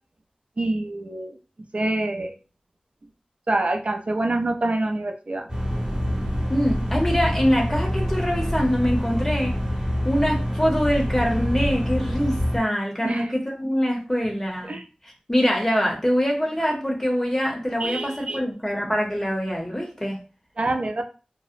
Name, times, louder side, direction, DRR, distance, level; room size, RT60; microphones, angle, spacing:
voice 1, 0.6-1.4 1.7-2.3 3.5-5.5 13.0-13.3 14.6-14.8 17.8-18.4 20.6-21.0, right 2 dB, 60° right, 5 dB, 0.4 m, -26 dB
sound 1, 5.5-12.6, equal, 35° right, 0.9 m, -26 dB
voice 2, 6.5-9.5 10.0-14.8 15.0-20.2, equal, 20° left, -1 dB, 0.6 m, -24 dB
2.7 x 2.0 x 2.4 m, 0.35 s
wide cardioid pair, 45°, 2 cm